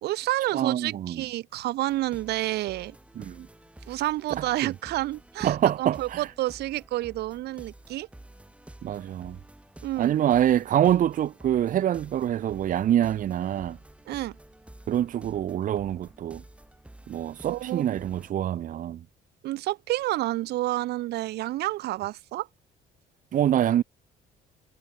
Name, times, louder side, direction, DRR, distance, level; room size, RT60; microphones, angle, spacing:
voice 1, 0.0-2.9 3.9-8.1 9.8-10.1 14.1-14.4 17.4-18.0 19.4-22.5, right 16 dB, 75° right, 1.3 m, -29 dB
voice 2, 0.5-1.2 3.2-3.5 4.4-4.7 5.4-6.3 8.8-9.4 10.0-13.8 14.9-16.4 17.1-19.0 23.3-23.8, right 11 dB, 55° right, 1.2 m, -25 dB
sound 1, 1.9-18.3, right 1 dB, 5° right, 7.5 m, -50 dB
cardioid pair, 110°, 17 cm